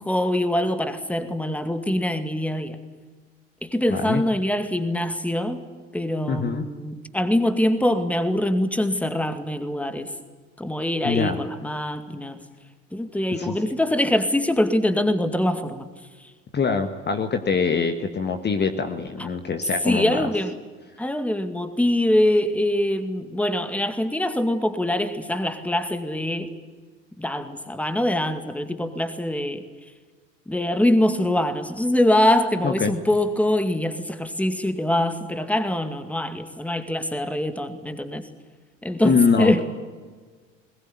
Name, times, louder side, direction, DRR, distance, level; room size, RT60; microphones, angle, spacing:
voice 1, 0.0-2.8 3.6-5.6 5.9-10.1 10.6-12.4 12.9-15.9 19.2-19.3 19.8-20.5 21.0-26.5 27.2-29.6 30.5-38.3 38.8-39.6, left 1 dB, 5° left, 9 dB, 2.2 m, -23 dB
voice 2, 3.9-4.2 6.3-6.7 11.0-11.4 13.4-13.5 16.5-20.3 32.6-32.9 39.0-39.6, left 5 dB, 25° left, 6 dB, 1.7 m, -23 dB
21.0 x 20.0 x 9.4 m, 1.4 s
figure-of-eight pair, 65°, 38 cm